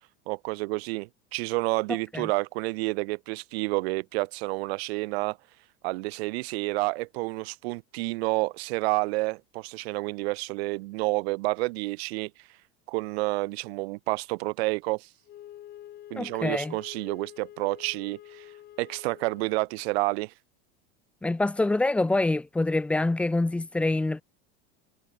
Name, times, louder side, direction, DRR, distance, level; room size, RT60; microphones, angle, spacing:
voice 1, 0.3-5.4 5.8-12.3 12.9-15.1 16.1-18.5 18.8-20.3, right 24 dB, 60° right, 2.0 m, -29 dB
Wind instrument woodwind instrument, 15.3-19.7, left 12 dB, 30° left, 3.7 m, -47 dB
voice 2, 16.1-16.7 21.2-24.2, left 2 dB, 5° left, 0.6 m, -26 dB
supercardioid pair, 165°, 34 cm